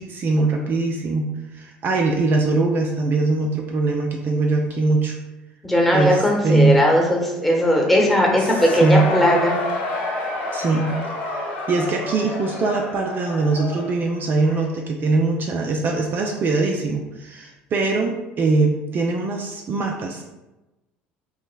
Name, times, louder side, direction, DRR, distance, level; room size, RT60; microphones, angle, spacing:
voice 1, 0.0-5.2 5.9-6.8 8.4-9.0 10.5-11.0 11.3-20.2, right 3 dB, 45° right, 1 dB, 0.4 m, -22 dB
voice 2, 5.6-9.6, equal, ahead, -1 dB, 1.0 m, -18 dB
Cheering / Crowd, 8.1-14.8, left 2 dB, 75° left, 1.0 m, -29 dB
5.3 x 2.0 x 2.3 m, 1.0 s
hypercardioid pair, 70°, 5 cm